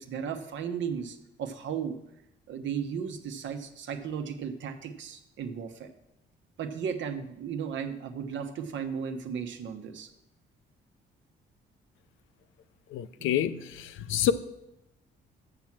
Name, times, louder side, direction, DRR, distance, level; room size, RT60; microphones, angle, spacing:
voice 1, 0.0-2.0 2.5-5.9 6.6-10.1 13.2-13.3, right 7 dB, 70° right, 7 dB, 1.0 m, -35 dB
voice 2, 12.9-14.3, left 10 dB, 85° left, 13 dB, 0.5 m, -28 dB
7.4 x 6.9 x 6.0 m, 0.86 s
cardioid pair, 90°, 20 cm